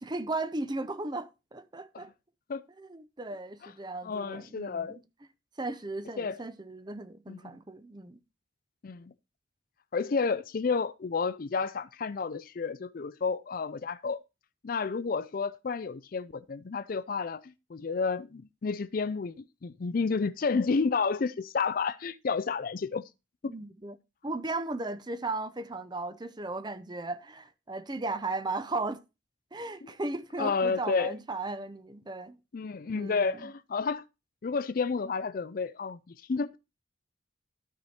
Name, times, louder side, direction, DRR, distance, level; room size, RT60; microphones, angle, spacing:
voice 1, 0.0-2.1 2.8-5.0 5.6-8.2 23.4-24.0 24.2-29.0 29.5-32.4 32.9-33.5, right 2 dB, 20° right, 0.6 m, -36 dB
voice 2, 4.0-5.0 6.2-6.4 7.3-7.5 8.8-9.1 9.9-14.2 14.6-19.4 19.6-23.0 23.4-23.5 29.8-29.9 30.4-31.2 32.5-34.0 34.4-36.6, left 4 dB, 45° left, 0.4 m, -31 dB
12.5 x 4.9 x 4.3 m
head